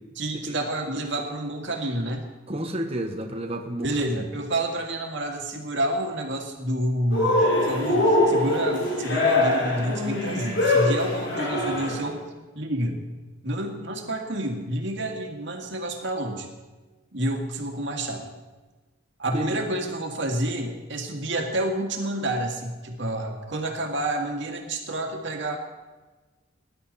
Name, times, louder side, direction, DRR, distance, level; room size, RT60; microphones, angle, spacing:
voice 1, 0.2-2.3 3.8-12.2 12.5-13.0 13.4-16.5 17.1-18.3 19.2-25.6, right 1 dB, 65° right, 2 dB, 2.2 m, -29 dB
voice 2, 2.5-4.2 19.3-19.6, right 1 dB, 30° right, 2 dB, 1.3 m, -31 dB
Cheering, 7.1-12.1, left 2 dB, 65° left, 3.9 m, -23 dB
19.5 x 11.0 x 4.2 m, 1.2 s
head